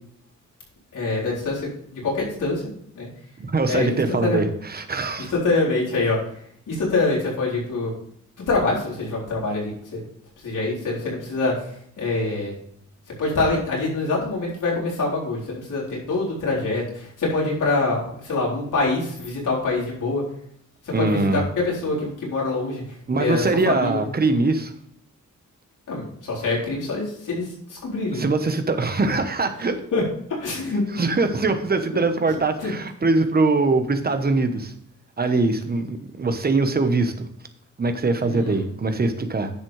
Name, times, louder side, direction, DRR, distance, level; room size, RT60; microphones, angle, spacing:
voice 1, 0.9-2.6 2.9-3.1 3.7-4.4 5.3-6.2 6.7-7.9 8.5-10.0 10.4-12.5 13.2-20.2 20.8-24.0 25.9-28.3 29.9-30.0 30.3-31.1 31.9-32.0 32.6-32.7 38.2-38.6, left 3 dB, 80° left, -4 dB, 4.1 m, -25 dB
voice 2, 3.4-5.3 20.9-21.4 23.1-24.7 28.1-29.8 30.9-34.7 35.2-37.3 37.8-39.5, right 3 dB, 30° right, 8 dB, 1.1 m, -22 dB
10.0 x 7.3 x 3.3 m, 0.68 s
wide cardioid pair, 125°, 31 cm